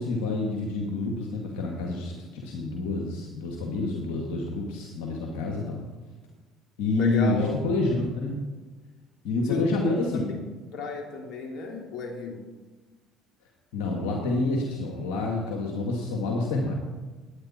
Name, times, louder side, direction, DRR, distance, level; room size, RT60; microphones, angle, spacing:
voice 1, 0.0-5.8 6.8-8.4 9.2-10.2 13.7-16.7, left 2 dB, 85° left, 0 dB, 2.1 m, -28 dB
voice 2, 7.0-7.6 9.4-10.4 10.7-12.4, left 4 dB, 65° left, 2 dB, 3.0 m, -33 dB
19.0 x 9.5 x 4.4 m, 1.3 s
supercardioid pair, 75°, 0 cm